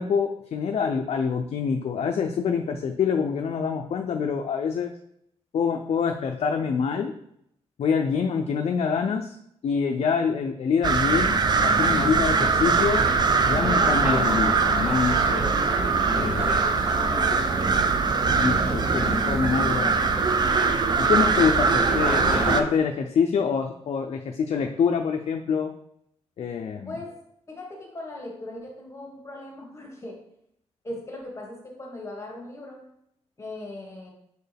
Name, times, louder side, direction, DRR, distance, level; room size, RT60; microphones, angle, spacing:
voice 1, 0.0-4.9 5.5-7.1 7.8-9.4 9.6-13.1 13.5-15.4 16.1-16.7 17.3-17.4 18.3-20.0 21.0-25.7 26.4-27.0, left 6 dB, 60° left, 4 dB, 0.4 m, -26 dB
sound 1, 10.8-22.6, right 4 dB, 40° right, 0.5 m, -22 dB
sound 2, 11.0-22.6, equal, 15° right, 2.0 m, -33 dB
voice 2, 16.8-17.4 26.8-27.1 27.5-30.2 30.8-32.8 33.4-34.1, left 1 dB, 25° left, -1 dB, 1.5 m, -39 dB
6.4 x 4.4 x 3.4 m, 0.74 s
wide cardioid pair, 140°, 12 cm